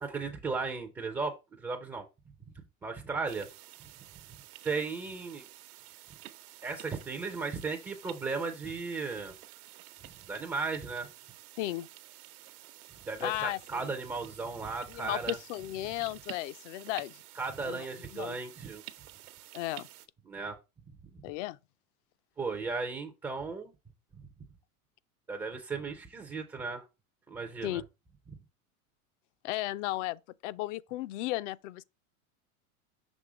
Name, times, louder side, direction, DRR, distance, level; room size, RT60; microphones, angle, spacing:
voice 1, 0.0-2.0 2.8-3.5 4.6-5.4 6.6-9.3 10.3-11.1 13.1-15.4 17.3-18.8 20.3-20.6 22.4-23.7 25.3-26.8 27.3-27.8 28.3-28.4, right 4 dB, 10° right, 0.3 m, -35 dB
Falling Snow Recorded with a Hydrophone, 3.3-20.1, right 15 dB, 75° right, 0.9 m, -50 dB
voice 2, 11.6-11.9 13.2-13.6 14.9-17.2 17.6-17.9 18.1-18.4 19.5-19.9 21.2-21.6 27.6-27.8 29.4-31.8, left 16 dB, 55° left, 0.5 m, -35 dB
6.2 x 3.2 x 4.8 m
supercardioid pair, 130°, 44 cm